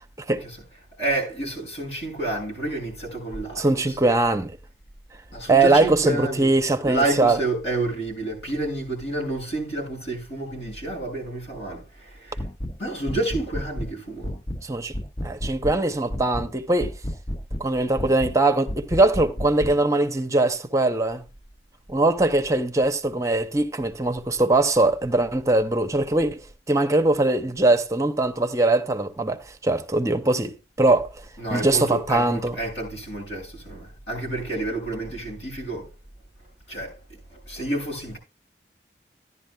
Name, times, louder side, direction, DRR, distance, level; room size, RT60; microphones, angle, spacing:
voice 1, 0.9-4.0 5.3-6.5 6.8-12.4 12.8-14.3 31.4-35.9 36.7-37.0 37.3-38.2, right 2 dB, 75° left, 6.8 m, -29 dB
voice 2, 3.6-4.5 5.5-7.4 14.6-14.9 15.2-16.9 17.6-21.2 21.9-26.4 26.7-31.1 31.5-32.6, right 2 dB, 15° right, 0.7 m, -21 dB
sound 1, 12.4-12.8 13.1-13.9 14.2-14.6 14.9-15.8 16.1-16.5 16.8-17.7 18.0-18.4 18.7-19.8, equal, 20° left, 0.4 m, -31 dB
15.5 x 11.0 x 2.2 m
head